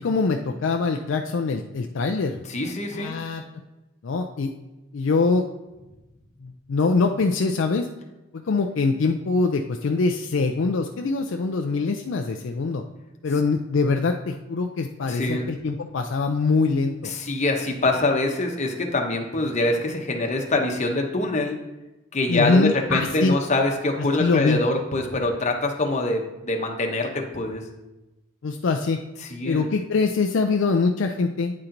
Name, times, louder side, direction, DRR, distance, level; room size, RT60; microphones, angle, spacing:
voice 1, 0.0-2.4 2.9-3.4 4.0-4.5 4.9-5.5 6.4-7.9 8.4-12.8 13.2-17.1 22.3-23.3 24.2-24.6 28.4-29.0 29.4-31.5, left 4 dB, 60° left, 4 dB, 0.4 m, -23 dB
voice 2, 2.5-3.2 15.0-15.5 17.0-21.6 22.1-27.6 29.3-29.7, left 2 dB, 35° left, 2 dB, 0.9 m, -24 dB
9.6 x 4.4 x 3.9 m, 1.0 s
head